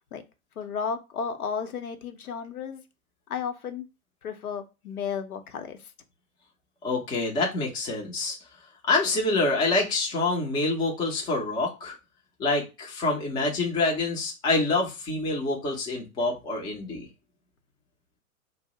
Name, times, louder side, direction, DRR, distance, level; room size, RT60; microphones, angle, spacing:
voice 1, 0.6-2.8 3.3-3.9 4.2-5.8, left 6 dB, 75° left, 7 dB, 0.8 m, -33 dB
voice 2, 6.8-8.4 8.8-12.0 12.4-17.1, left 3 dB, 10° left, -1 dB, 0.5 m, -26 dB
2.6 x 2.0 x 3.7 m, 0.27 s
figure-of-eight pair, 110°, 44 cm